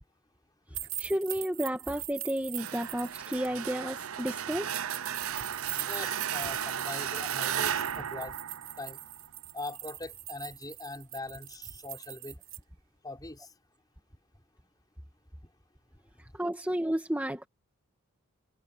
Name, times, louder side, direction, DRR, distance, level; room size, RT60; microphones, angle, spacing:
sound 1, 0.7-3.5 4.9-12.6, right 15 dB, 65° right, 3.7 m, -42 dB
voice 1, 1.0-4.7 16.2-17.5, equal, 10° right, 1.9 m, -32 dB
sound 2, 2.6-9.3, right 9 dB, 85° right, 0.7 m, -34 dB
voice 2, 5.9-8.4 8.8-9.0 9.5-12.4 13.0-13.5, left 2 dB, 20° left, 5.5 m, -41 dB
head